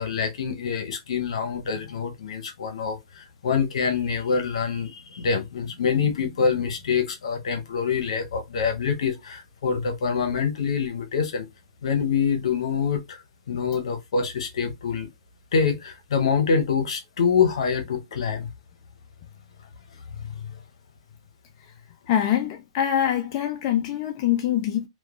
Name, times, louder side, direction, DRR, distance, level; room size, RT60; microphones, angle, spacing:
voice 1, 0.0-11.5 11.8-15.1 15.5-18.5 20.2-20.3, left 6 dB, 70° left, 0.8 m, -25 dB
voice 2, 22.1-24.9, left 10 dB, 35° left, 0.3 m, -24 dB
2.9 x 2.2 x 2.4 m
hypercardioid pair, 145°, 3 cm